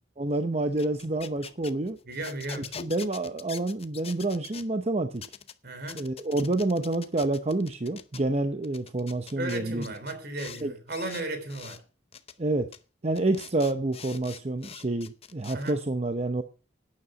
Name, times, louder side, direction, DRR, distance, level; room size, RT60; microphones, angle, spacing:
voice 1, 0.2-2.0 2.7-5.2 5.9-9.9 10.6-10.7 12.4-12.7 13.0-16.4, right 2 dB, 35° right, 0.8 m, -28 dB
sound 1, 0.7-4.7 5.2-5.5 5.9-8.2 8.6-10.6 10.9-11.8 12.1-12.3 12.7-12.8 13.1-15.7, left 7 dB, 35° left, 0.7 m, -44 dB
voice 2, 2.1-2.7 5.6-6.1 9.4-11.8 15.5-15.8, right 2 dB, 60° right, 3.3 m, -35 dB
11.5 x 9.8 x 5.1 m
head